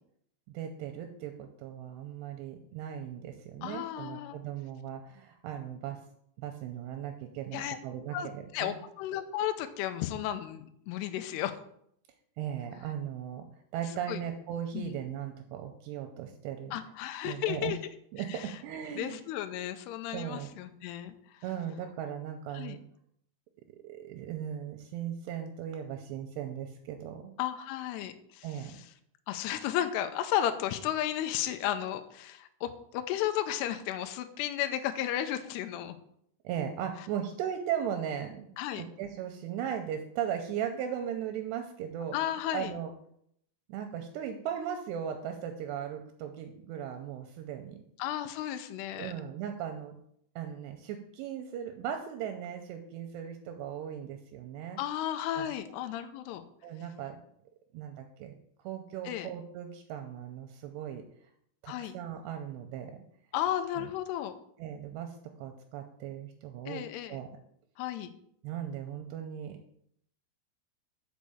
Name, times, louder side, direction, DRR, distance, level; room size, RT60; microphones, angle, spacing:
voice 1, 0.5-6.0 6.4-8.8 12.4-13.5 13.7-16.8 17.2-17.8 18.1-19.2 20.1-20.5 21.4-22.8 23.8-27.3 28.4-28.8 36.4-38.5 38.8-42.2 42.5-42.9 43.7-47.8 49.0-49.9 50.4-54.8 55.4-55.5 56.6-57.2 57.7-58.4 58.6-61.0 61.6-63.0 63.7-63.9 64.6-66.8 67.1-67.3 68.4-69.6, right 9 dB, 80° right, 5 dB, 2.7 m, -37 dB
voice 2, 3.6-4.4 7.5-7.8 8.1-11.6 14.1-14.2 14.7-14.9 16.7-17.8 18.3-18.5 19.0-21.1 22.5-22.8 27.4-28.5 29.3-36.0 38.6-38.8 42.1-42.7 48.0-49.1 54.8-56.4 59.1-59.3 61.7-62.0 63.3-64.3 66.7-67.2 67.8-68.1, left 11 dB, 80° left, 8 dB, 2.6 m, -33 dB
6.3 x 5.2 x 7.0 m, 0.70 s
omnidirectional pair, 5.2 m